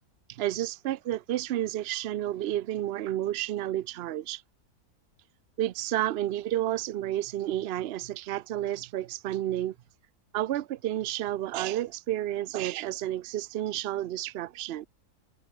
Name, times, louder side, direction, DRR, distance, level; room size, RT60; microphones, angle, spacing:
voice 1, 0.3-4.4 5.6-9.7 10.3-14.9, right 13 dB, 85° right, 0.5 m, -31 dB
omnidirectional pair, 1.7 m